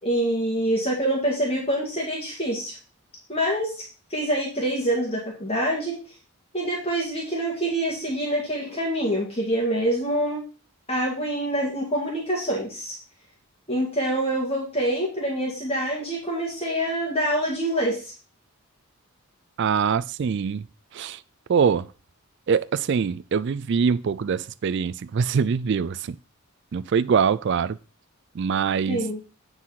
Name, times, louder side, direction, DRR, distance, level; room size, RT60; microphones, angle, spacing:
voice 1, 0.0-2.8 3.3-3.8 4.1-6.0 6.5-10.4 10.9-13.0 13.7-18.1 28.9-29.2, right 1 dB, 25° left, 2.0 m, -26 dB
voice 2, 19.6-20.7 20.9-21.2 21.5-21.9 22.5-26.2 26.7-27.8 28.4-29.1, right 6 dB, 50° right, 0.3 m, -23 dB
9.6 x 4.1 x 5.7 m
head